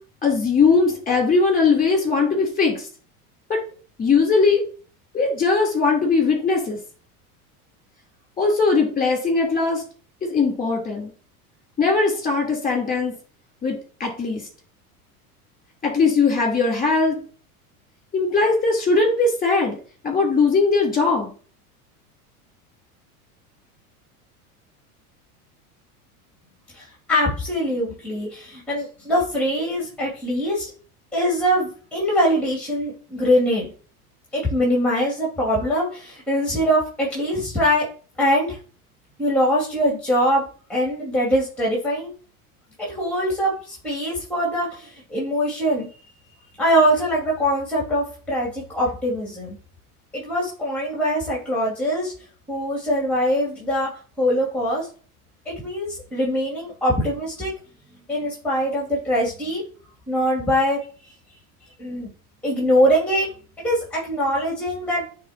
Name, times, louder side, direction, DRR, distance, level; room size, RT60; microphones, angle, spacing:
voice 1, 0.2-2.9 3.5-3.6 4.0-4.6 5.1-6.8 8.4-9.8 10.2-11.1 11.8-13.1 13.6-14.4 15.8-17.2 18.1-19.8 20.0-21.3, left 4 dB, 20° left, 0 dB, 3.5 m, -20 dB
voice 2, 26.7-30.7 31.1-33.7 34.3-37.9 38.2-38.6 39.2-40.4 40.7-42.1 42.8-45.9 46.6-49.6 50.1-52.1 52.5-53.9 54.2-54.9 55.5-57.5 58.1-59.6 60.1-60.8 61.8-62.1 62.4-63.3 63.6-65.0, equal, 5° left, -3 dB, 2.5 m, -22 dB
9.1 x 4.0 x 2.9 m, 0.40 s
hypercardioid pair, 90°, 45 cm